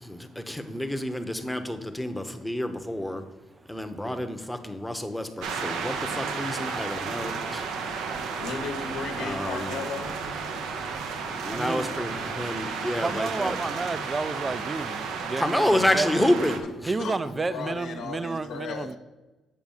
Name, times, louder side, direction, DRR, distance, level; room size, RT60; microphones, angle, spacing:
voice 1, 0.0-3.2 3.7-7.6 9.2-9.8 11.4-13.6 15.4-16.6, left 1 dB, 5° left, 0.9 m, -29 dB
sound 1, 5.4-16.6, right 5 dB, 90° right, 0.9 m, -33 dB
voice 2, 7.5-8.0 11.4-11.9 13.0-16.1 16.9-19.0, right 3 dB, 25° right, 0.4 m, -31 dB
voice 3, 8.4-10.1 17.0-19.0, left 5 dB, 85° left, 1.1 m, -35 dB
7.7 x 4.6 x 7.2 m
cardioid pair, 90°, 0 cm